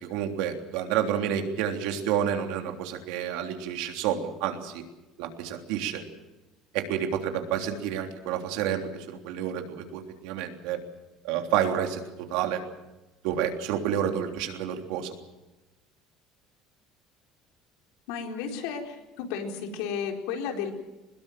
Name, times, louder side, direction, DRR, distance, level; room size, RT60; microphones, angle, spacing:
voice 1, 0.0-4.8 5.2-6.0 6.7-10.8 11.2-12.0 12.3-12.6 13.2-15.1, right 9 dB, 75° right, 4 dB, 3.4 m, -29 dB
voice 2, 18.1-20.7, left 6 dB, 85° left, 3 dB, 4.4 m, -33 dB
22.5 x 21.0 x 7.7 m, 1.1 s
cardioid pair, 170°, 0 cm